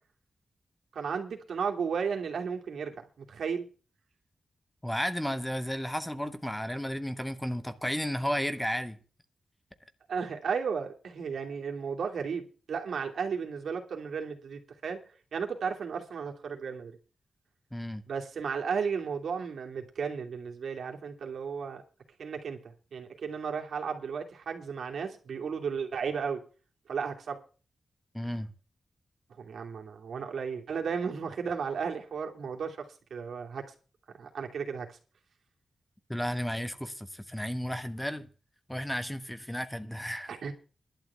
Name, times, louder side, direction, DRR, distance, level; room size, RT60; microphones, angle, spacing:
voice 1, 0.9-3.7 10.1-15.0 15.3-17.0 18.1-21.8 22.2-26.4 26.9-27.4 29.4-33.6 34.2-35.0 40.3-40.5, right 6 dB, 85° right, 2.7 m, -34 dB
voice 2, 4.8-9.0 17.7-18.0 28.1-28.5 36.1-38.3 38.7-40.3, equal, 5° left, 1.2 m, -33 dB
11.5 x 6.9 x 8.7 m
wide cardioid pair, 105°, 0 cm